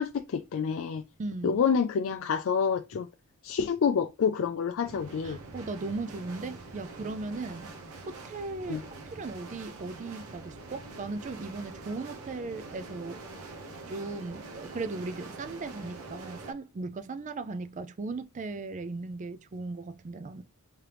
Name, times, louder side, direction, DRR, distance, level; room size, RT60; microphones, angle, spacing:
voice 1, 0.0-1.0 1.4-3.1 3.4-5.4 8.7-8.8, left 6 dB, 60° left, 0.3 m, -28 dB
voice 2, 1.2-1.6 5.2-7.7 8.1-13.2 13.9-20.4, right 3 dB, 35° right, 0.4 m, -37 dB
sound 1, 4.8-16.5, right 3 dB, 70° right, 0.9 m, -45 dB
3.6 x 3.3 x 3.0 m
head